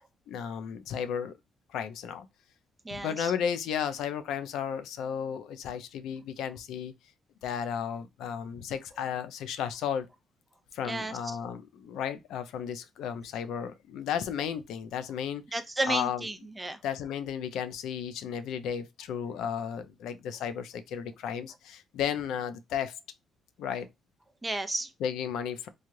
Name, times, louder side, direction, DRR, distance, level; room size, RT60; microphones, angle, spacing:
voice 1, 0.3-1.3 1.7-2.3 2.9-6.9 7.4-10.1 10.7-15.4 15.9-16.3 16.8-23.0 23.6-23.9 25.0-25.7, left 8 dB, 85° left, 0.5 m, -34 dB
voice 2, 2.8-3.3 10.8-11.2 15.5-16.8 24.4-24.9, right 2 dB, 15° right, 0.6 m, -32 dB
3.1 x 2.3 x 2.6 m
cardioid pair, 90°, 0 cm